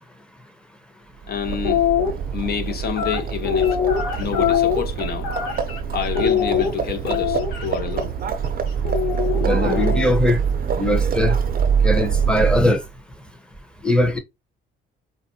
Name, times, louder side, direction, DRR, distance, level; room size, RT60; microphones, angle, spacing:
Livestock farm animals working animals, 1.2-12.9, right 7 dB, 45° right, 0.5 m, -24 dB
voice 1, 1.3-1.8 2.3-3.8 4.2-5.3 5.9-8.1, left 7 dB, 50° left, 0.7 m, -28 dB
sound 1, 1.5-2.1 2.9-5.8 6.1-7.7 8.8-10.2, left 8 dB, 80° left, 0.9 m, -22 dB
voice 2, 9.4-10.4 10.8-11.4 11.8-12.8 13.8-14.2, left 1 dB, 5° left, 0.8 m, -20 dB
4.0 x 2.2 x 2.6 m
cardioid pair, 90°, 20 cm